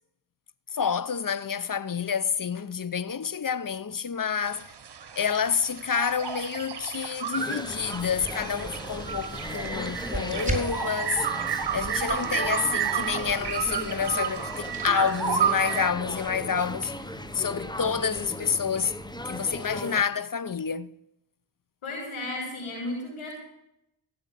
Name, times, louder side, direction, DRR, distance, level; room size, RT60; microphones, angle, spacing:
voice 1, 0.7-4.7 5.2-11.3 11.7-16.9 17.3-18.9 19.2-20.9, left 6 dB, 40° left, 0.8 m, -28 dB
sound 1, 4.4-15.9, right 8 dB, 55° right, 1.2 m, -31 dB
sound 2, 7.4-20.0, left 1 dB, 10° left, 1.1 m, -38 dB
sound 3, 7.6-19.8, right 3 dB, 15° right, 5.0 m, -40 dB
voice 2, 21.8-23.3, left 2 dB, 85° left, 7.3 m, -34 dB
16.5 x 8.0 x 7.5 m
cardioid pair, 40°, 49 cm